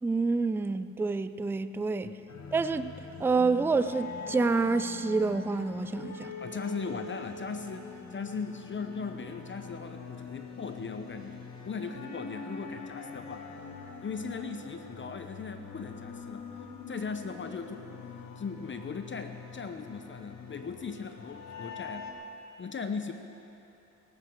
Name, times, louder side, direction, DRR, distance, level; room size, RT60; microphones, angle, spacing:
voice 1, 0.0-2.1 2.5-2.9 3.2-6.3, right 4 dB, 5° right, 11 dB, 0.4 m, -28 dB
sound 1, 2.3-22.1, left 5 dB, 55° left, 1.5 m, -44 dB
voice 2, 6.4-11.4 11.6-13.5 14.0-17.9 18.4-22.1 22.6-23.1, left 5 dB, 35° left, 7 dB, 0.8 m, -38 dB
17.5 x 13.0 x 4.6 m, 2.9 s
cardioid pair, 90°, 33 cm